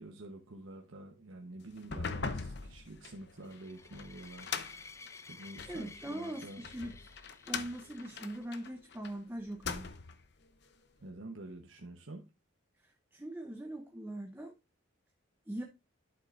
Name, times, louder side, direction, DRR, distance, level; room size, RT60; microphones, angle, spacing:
voice 1, 0.0-6.7 11.0-12.3, right 1 dB, 75° right, 1.1 m, -48 dB
sound 1, 1.8-5.8 6.4-9.1 9.5-10.3, left 5 dB, 55° left, 0.8 m, -41 dB
sound 2, 3.4-8.7, left 4 dB, 15° left, 0.3 m, -54 dB
voice 2, 5.7-7.1 7.5-9.8 12.8-14.5 15.5-15.6, right 1 dB, 10° right, 0.7 m, -41 dB
11.5 x 6.6 x 2.5 m
head